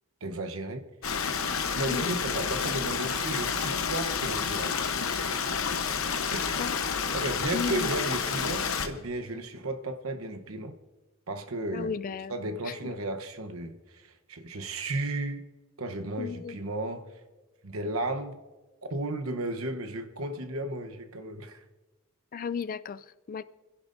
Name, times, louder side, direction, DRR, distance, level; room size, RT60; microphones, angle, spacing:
voice 1, 0.2-0.8 1.7-4.7 5.3-5.8 6.3-6.6 7.1-10.8 11.3-11.9 12.3-15.4 15.8-17.1 17.6-18.4 18.9-21.6, right 2 dB, 75° right, 1.0 m, -34 dB
Stream, 1.0-8.9, left 6 dB, 75° left, 1.0 m, -30 dB
voice 2, 7.5-7.9 11.7-12.3 12.7-12.8 16.2-16.6 22.3-23.4, left 6 dB, 40° left, 0.4 m, -34 dB
29.0 x 11.0 x 2.6 m
head